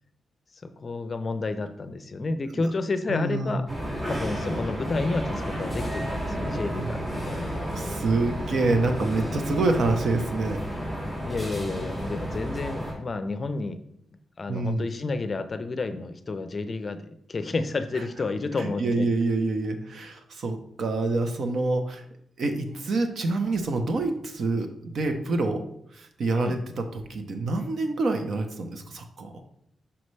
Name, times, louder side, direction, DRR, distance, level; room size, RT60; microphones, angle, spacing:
voice 1, 0.6-3.7 4.1-7.4 11.2-13.8 14.4-19.1 26.3-26.6, left 3 dB, 35° left, 10 dB, 0.5 m, -30 dB
voice 2, 3.1-3.6 7.3-10.6 14.5-14.9 18.6-22.0 22.4-25.6 25.9-29.4, right 3 dB, 60° right, 6 dB, 0.8 m, -27 dB
sound 1, 3.7-12.9, equal, 25° right, 2.2 m, -31 dB
5.7 x 5.3 x 3.2 m, 0.73 s
wide cardioid pair, 120°, 0 cm